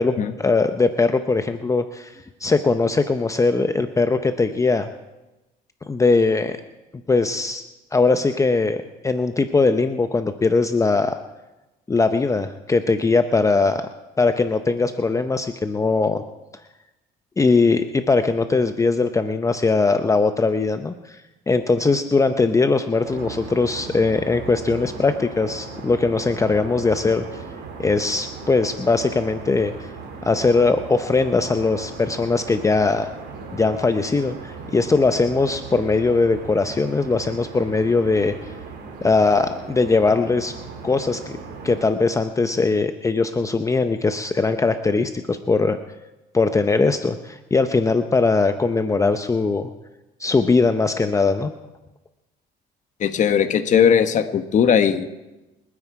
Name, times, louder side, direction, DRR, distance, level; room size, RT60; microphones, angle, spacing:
voice 1, 0.0-4.9 5.9-6.6 7.1-7.6 7.9-11.2 11.9-13.8 14.2-16.2 17.4-21.2 21.5-27.3 27.8-29.9 30.2-33.1 33.5-38.3 39.0-40.5 40.8-41.4 41.6-45.8 46.3-49.7 50.2-51.5, left 3 dB, 20° left, 8 dB, 0.8 m, -20 dB
sound 1, 23.0-41.9, right 5 dB, 80° right, 3.3 m, -37 dB
voice 2, 53.0-55.1, left 8 dB, 45° left, 7 dB, 1.3 m, -18 dB
28.0 x 9.7 x 4.8 m, 1.0 s
cardioid pair, 110°, 17 cm